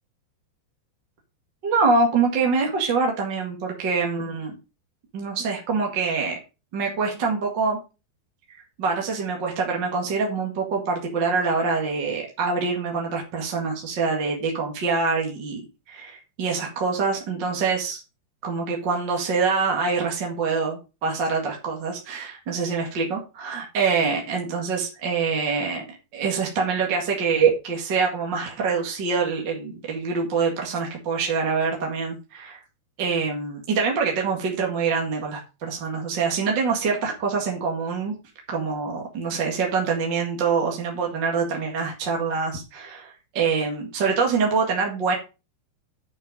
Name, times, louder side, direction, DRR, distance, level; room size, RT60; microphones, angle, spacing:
voice 1, 1.6-4.6 5.1-6.4 6.7-7.8 8.5-15.6 15.9-18.0 18.4-25.8 26.1-32.6 33.0-38.1 38.5-45.2, right 5 dB, 40° right, 0 dB, 1.8 m, -25 dB
9.0 x 6.5 x 5.3 m, 0.30 s
omnidirectional pair, 4.6 m